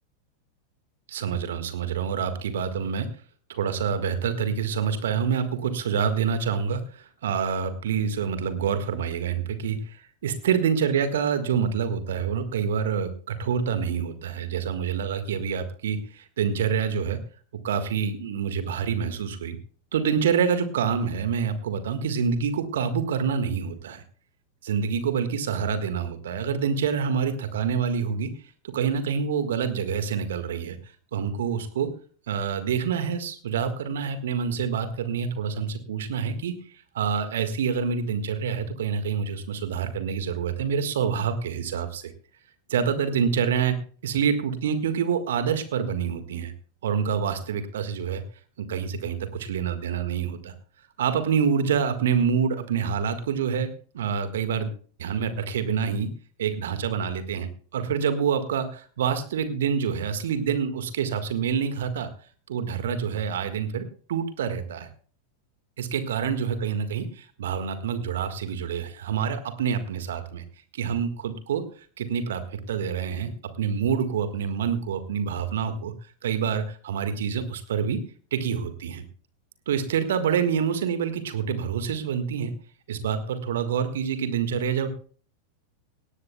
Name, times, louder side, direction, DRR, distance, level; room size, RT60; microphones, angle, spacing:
voice 1, 1.1-3.1 3.5-17.2 17.6-19.6 19.9-24.0 24.6-28.3 28.7-30.8 31.1-31.9 32.3-42.1 42.7-46.5 46.8-48.2 48.6-50.5 51.0-54.7 55.0-56.1 56.4-62.1 62.5-64.9 65.8-70.4 70.7-78.0 78.3-79.0 79.7-82.5 82.9-84.9, right 7 dB, 60° right, 10 dB, 1.6 m, -27 dB
18.0 x 18.0 x 2.2 m, 0.43 s
figure-of-eight pair, 90°, 0 cm